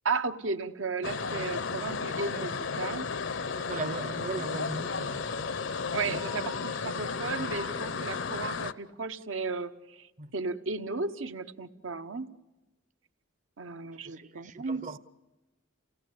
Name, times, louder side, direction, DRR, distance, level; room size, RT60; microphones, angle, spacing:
voice 1, 0.0-3.1 5.9-12.3 13.6-14.9, right 4 dB, 75° right, 1.0 m, -34 dB
sound 1, 1.0-8.7, left 5 dB, 65° left, 0.7 m, -33 dB
voice 2, 3.7-5.2 6.1-6.2 10.2-10.3 14.0-15.0, right 2 dB, 40° right, 0.8 m, -38 dB
29.0 x 17.5 x 8.6 m
head